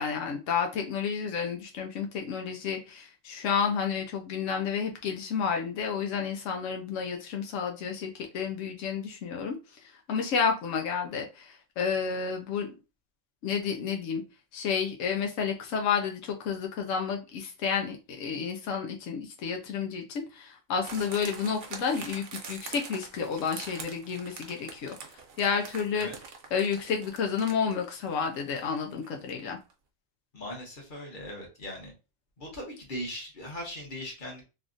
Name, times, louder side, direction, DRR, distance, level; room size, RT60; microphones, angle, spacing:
voice 1, 0.0-9.6 10.1-12.7 13.4-14.2 14.5-25.0 25.4-26.1 26.5-29.6, left 6 dB, 80° left, 3 dB, 1.0 m, -30 dB
sound 1, 20.8-29.4 29.7-29.8, right 5 dB, 75° right, 1.0 m, -44 dB
voice 2, 30.3-31.9 32.4-34.4, equal, 40° left, -1 dB, 1.3 m, -39 dB
3.5 x 2.4 x 2.5 m, 0.29 s
omnidirectional pair, 1.3 m